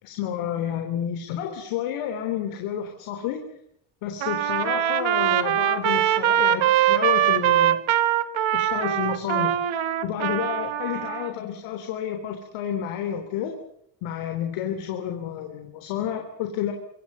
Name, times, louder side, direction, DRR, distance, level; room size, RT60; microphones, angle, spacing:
voice 1, 0.0-3.4 4.0-7.8 8.5-9.6 10.0-13.5 14.0-16.7, left 9 dB, 85° left, 5 dB, 3.6 m, -30 dB
Trumpet, 4.2-11.3, right 11 dB, 70° right, 2.2 m, -22 dB
27.5 x 25.5 x 5.6 m, 0.75 s
supercardioid pair, 60°, 49 cm